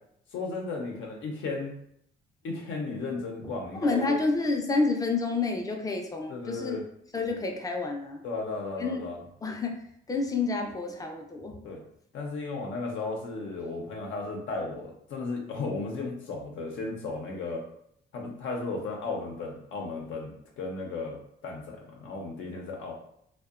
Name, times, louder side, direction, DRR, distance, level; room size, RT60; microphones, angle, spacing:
voice 1, 0.3-1.7 2.4-4.2 6.3-6.8 8.2-9.2 11.6-11.8 12.1-17.6 18.1-22.9, left 3 dB, 75° left, 0 dB, 0.5 m, -35 dB
voice 2, 3.7-6.8 7.1-8.2 8.8-9.0 9.4-9.7 10.1-11.6, left 3 dB, 20° left, 2 dB, 0.4 m, -29 dB
2.6 x 2.1 x 2.4 m, 0.70 s
cardioid pair, 90°, 20 cm